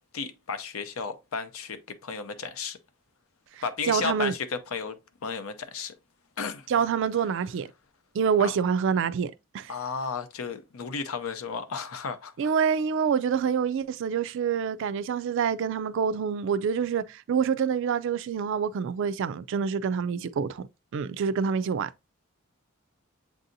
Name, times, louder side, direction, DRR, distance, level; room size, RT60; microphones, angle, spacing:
voice 1, 0.1-2.8 3.6-6.0 6.4-6.7 8.4-8.5 9.7-12.5, left 5 dB, 85° left, 0.6 m, -34 dB
voice 2, 3.9-4.3 6.7-7.7 8.1-9.7 12.4-20.6 20.9-21.9, right 6 dB, 60° right, 0.3 m, -26 dB
7.5 x 2.7 x 2.6 m
head